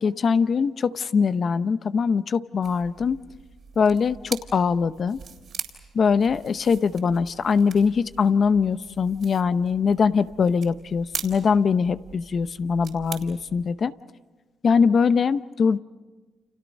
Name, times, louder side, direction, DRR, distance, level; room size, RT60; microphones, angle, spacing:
voice 1, 0.0-3.2 3.8-5.2 5.9-13.9 14.6-15.8, left 5 dB, 50° left, 13 dB, 0.8 m, -22 dB
sound 1, 2.6-13.7, right 7 dB, 60° right, 3.7 m, -41 dB
29.5 x 28.5 x 5.3 m, 1.3 s
cardioid pair, 90°, 0 cm